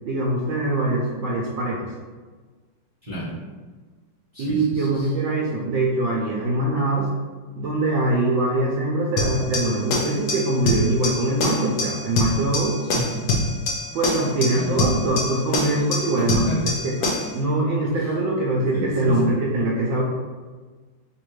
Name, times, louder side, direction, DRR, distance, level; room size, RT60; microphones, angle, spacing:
voice 1, 0.0-1.9 4.4-7.1 7.6-12.8 13.9-16.4 16.8-20.0, right 2 dB, 75° right, -4 dB, 1.3 m, -23 dB
voice 2, 3.0-3.3 4.3-5.1 12.9-13.2 14.5-14.7 16.2-16.8 18.0-18.1 18.7-19.3, equal, 25° right, -10 dB, 1.0 m, -31 dB
sound 1, 9.2-17.4, left 2 dB, 70° left, 1.1 m, -25 dB
3.3 x 2.6 x 4.5 m, 1.4 s
omnidirectional pair, 2.2 m